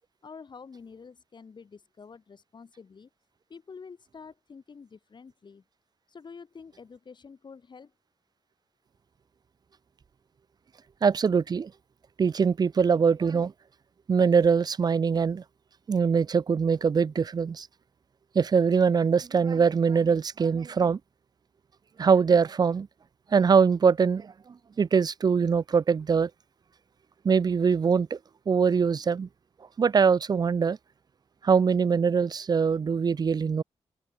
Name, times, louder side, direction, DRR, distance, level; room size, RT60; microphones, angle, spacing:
voice 1, 0.2-3.1 3.5-5.6 6.1-7.9, left 5 dB, 45° left, 6.1 m, -48 dB
voice 2, 11.0-11.7 12.2-13.5 14.1-15.4 15.9-17.7 18.3-21.0 22.0-22.9 23.3-24.3 24.8-26.3 27.2-28.2 28.5-29.3 29.8-30.8 31.4-33.6, right 6 dB, 40° right, 0.6 m, -23 dB
open air
wide cardioid pair, 125°, 11 cm